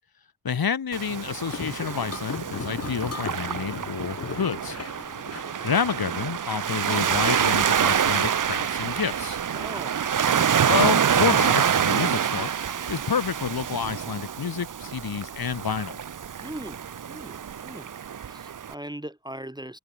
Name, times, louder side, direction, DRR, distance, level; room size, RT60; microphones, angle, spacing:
voice 1, 0.4-4.8 5.6-9.4 10.6-12.5 12.9-16.0, left 6 dB, 70° left, 1.0 m, -29 dB
Waves surf, 0.9-18.7, right 8 dB, 55° right, 0.6 m, -26 dB
sound 1, 1.5-6.4, left 5 dB, 40° left, 1.0 m, -37 dB
voice 2, 9.5-10.6 16.4-17.9 18.3-19.8, right 1 dB, 10° right, 1.0 m, -40 dB
cardioid pair, 45°, 38 cm